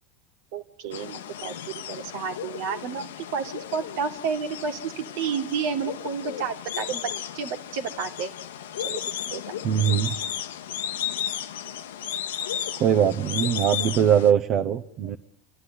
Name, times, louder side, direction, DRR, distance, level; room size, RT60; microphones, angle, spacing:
voice 1, 0.5-7.0 7.3-8.3 8.8-9.0 9.3-9.5, right 6 dB, 65° right, 7 dB, 2.0 m, -31 dB
sound 1, 0.9-14.3, left 10 dB, 80° left, 0.9 m, -34 dB
voice 2, 9.6-10.2 12.8-15.2, right 9 dB, 50° right, 5 dB, 1.0 m, -21 dB
29.5 x 11.5 x 9.7 m, 0.69 s
hypercardioid pair, 90°, 0 cm